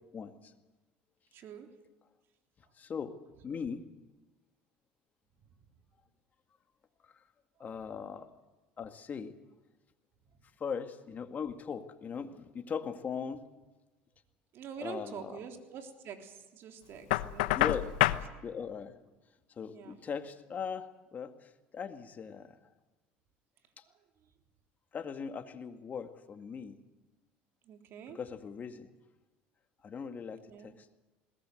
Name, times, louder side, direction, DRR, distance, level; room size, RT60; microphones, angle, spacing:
voice 1, 0.1-0.5 2.8-3.2 3.4-3.8 7.0-7.2 7.6-8.3 8.8-9.3 10.6-13.4 14.8-15.4 17.5-17.9 18.4-19.0 19.6-22.6 23.8-23.9 24.9-26.8 28.1-28.9 29.8-30.9, left 6 dB, 35° left, 7 dB, 2.2 m, -39 dB
voice 2, 1.3-1.7 14.5-17.9 19.7-20.0 23.9-24.3 27.6-28.2 30.5-30.7, right 7 dB, 55° right, 5 dB, 3.6 m, -46 dB
Knock, 17.1-18.3, left 17 dB, 85° left, 0.9 m, -27 dB
21.0 x 19.0 x 8.0 m, 1.2 s
supercardioid pair, 95°, 5 cm